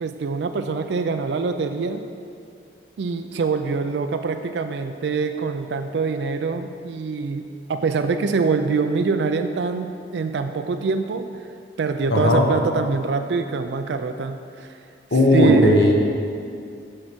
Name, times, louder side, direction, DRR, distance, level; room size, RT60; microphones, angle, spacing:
voice 1, 0.0-2.0 3.0-11.3 11.8-14.7 15.3-15.8, right 4 dB, 75° right, 7 dB, 0.4 m, -24 dB
voice 2, 12.1-12.5 15.1-15.9, left 1 dB, 70° left, 0 dB, 1.1 m, -16 dB
6.5 x 5.7 x 6.1 m, 2.4 s
head